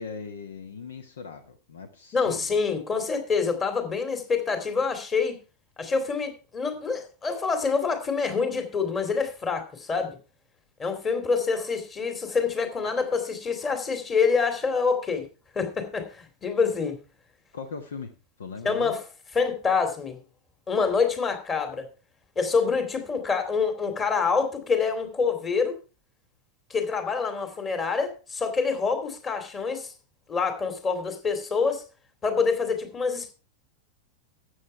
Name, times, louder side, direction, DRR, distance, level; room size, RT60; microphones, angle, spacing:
voice 1, 0.0-2.5 17.5-18.9, left 5 dB, 65° left, 9 dB, 1.3 m, -39 dB
voice 2, 2.1-5.4 5.8-10.2 10.8-15.3 15.5-17.0 18.6-19.0 19.3-20.2 20.7-21.9 22.4-25.8 26.7-29.9 30.3-31.8 32.2-33.3, left 5 dB, 20° left, 7 dB, 2.7 m, -26 dB
13.0 x 8.4 x 4.5 m, 0.33 s
figure-of-eight pair, 90°, 0 cm